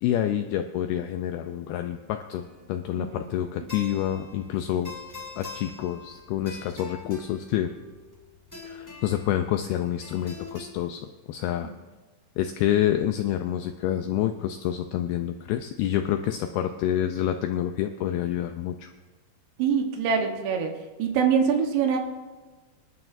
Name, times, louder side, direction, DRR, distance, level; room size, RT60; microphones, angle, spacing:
voice 1, 0.0-4.9 5.4-7.7 8.6-11.7 12.4-18.9, left 11 dB, 85° left, 7 dB, 2.2 m, -28 dB
sound 1, 2.4-10.6, left 4 dB, 5° left, 1.9 m, -44 dB
voice 2, 2.9-3.7 11.6-11.7 19.6-20.7 21.0-22.0, right 6 dB, 75° right, 3 dB, 3.3 m, -25 dB
25.5 x 11.5 x 2.6 m, 1.3 s
omnidirectional pair, 5.0 m